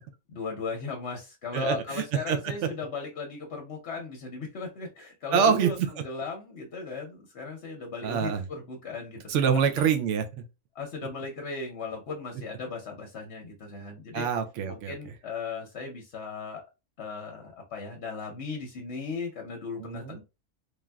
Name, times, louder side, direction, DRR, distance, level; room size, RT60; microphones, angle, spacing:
voice 1, 0.3-9.2 10.7-14.3 14.6-16.6 17.0-20.2, left 4 dB, 55° left, 1 dB, 0.9 m, -37 dB
voice 2, 1.5-2.4 5.3-5.9 8.0-8.4 9.3-10.4 14.1-14.9 19.8-20.2, right 7 dB, 70° right, 7 dB, 0.9 m, -25 dB
3.2 x 2.5 x 2.3 m, 0.27 s
omnidirectional pair, 1.4 m